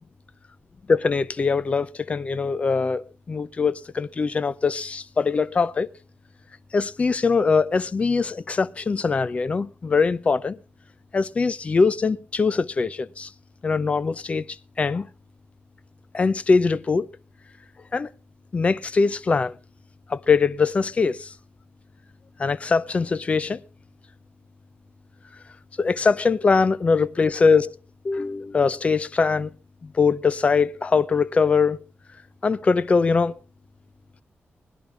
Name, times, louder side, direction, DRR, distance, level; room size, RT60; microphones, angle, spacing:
voice 1, 0.9-5.9 6.7-10.6 11.1-13.3 13.6-14.5 14.8-15.1 16.1-17.1 17.9-18.1 18.5-19.5 20.1-21.3 22.4-23.6 25.8-27.8 28.0-29.5 29.8-31.9 32.4-33.3, left 4 dB, 30° left, 0.6 m, -22 dB
21.5 x 10.5 x 3.4 m
wide cardioid pair, 170°, 4 cm